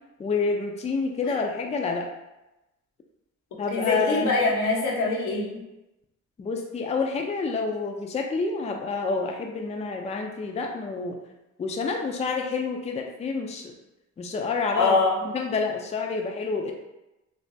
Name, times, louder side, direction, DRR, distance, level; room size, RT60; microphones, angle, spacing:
voice 1, 0.2-2.1 3.6-4.5 6.4-11.2 11.6-13.7 14.2-15.0 15.2-16.7, left 4 dB, 20° left, 2 dB, 0.4 m, -28 dB
voice 2, 3.7-5.6 14.7-15.2, left 3 dB, 85° left, -3 dB, 1.0 m, -24 dB
3.3 x 2.9 x 2.7 m, 0.96 s
cardioid pair, 90°, 30 cm